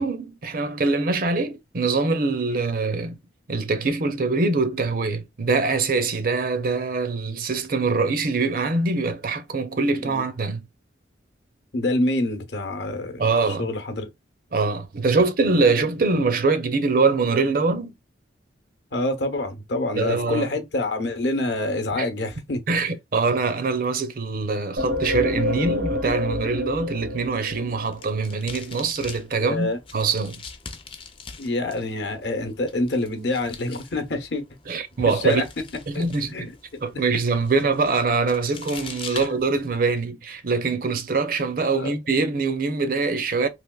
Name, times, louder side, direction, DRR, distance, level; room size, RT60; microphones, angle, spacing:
voice 1, 0.0-3.2 3.5-10.6 13.2-13.7 14.5-17.9 20.0-20.5 22.0-22.1 22.7-30.4 34.7-35.4 35.9-36.5 36.8-43.5, right 4 dB, 45° right, 0.5 m, -23 dB
voice 2, 11.7-13.3 13.6-14.1 18.9-22.6 29.4-29.8 31.4-34.4 35.1-35.4 35.9-36.0 36.3-37.0 41.7-41.9, left 2 dB, 60° left, 0.8 m, -26 dB
sound 1, 24.8-28.4, left 1 dB, 90° right, 1.1 m, -28 dB
sound 2, 27.7-40.0, left 5 dB, 30° left, 0.5 m, -43 dB
3.4 x 2.9 x 2.2 m
head